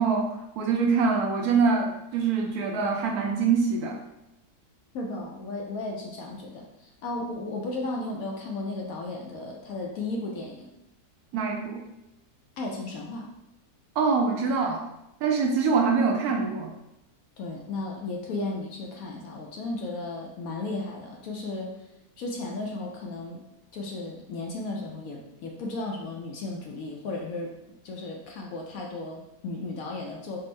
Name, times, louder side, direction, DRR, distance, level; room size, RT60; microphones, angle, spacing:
voice 1, 0.0-4.0 11.3-11.8 14.0-14.9 15.2-16.7, right 5 dB, 75° right, 1 dB, 1.0 m, -24 dB
voice 2, 4.9-6.7 7.0-10.7 12.6-13.3 17.4-21.7 22.2-23.4 23.7-27.6 27.8-30.4, left 2 dB, 70° left, 0 dB, 0.9 m, -34 dB
4.3 x 2.0 x 3.1 m, 0.89 s
omnidirectional pair, 1.7 m